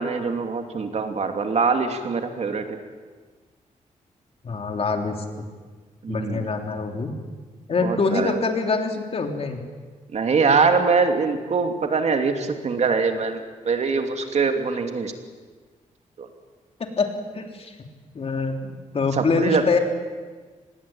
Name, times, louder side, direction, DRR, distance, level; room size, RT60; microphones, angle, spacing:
voice 1, 0.0-2.8 6.0-6.5 7.8-8.4 10.1-15.1 16.2-16.3 19.1-19.8, right 4 dB, 55° right, 5 dB, 2.8 m, -23 dB
voice 2, 4.4-5.2 6.1-7.1 7.7-9.6 16.8-17.7 18.1-19.8, left 4 dB, 50° left, 3 dB, 3.4 m, -25 dB
25.5 x 20.0 x 9.0 m, 1.4 s
cardioid pair, 105°, 13 cm